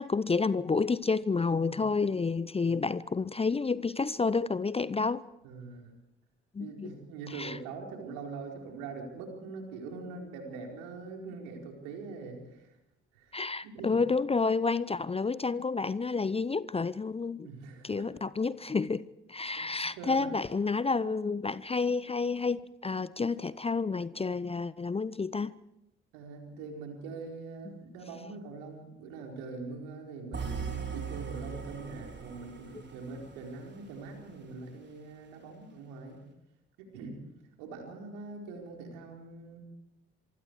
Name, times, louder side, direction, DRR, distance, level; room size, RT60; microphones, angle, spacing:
voice 1, 0.0-5.2 6.5-6.9 7.3-7.6 13.3-17.5 17.8-19.0 19.3-25.5, left 4 dB, 20° left, 19 dB, 0.7 m, -30 dB
voice 2, 5.4-5.9 6.6-12.8 13.1-13.9 17.4-18.1 19.6-19.7 20.0-20.3 26.1-36.2 36.8-37.2 37.6-39.6, right 4 dB, 70° right, 1 dB, 4.7 m, -43 dB
sound 1, 30.3-34.4, right 6 dB, 35° right, 4.3 m, -40 dB
26.0 x 24.5 x 4.8 m, 0.88 s
figure-of-eight pair, 45°, 33 cm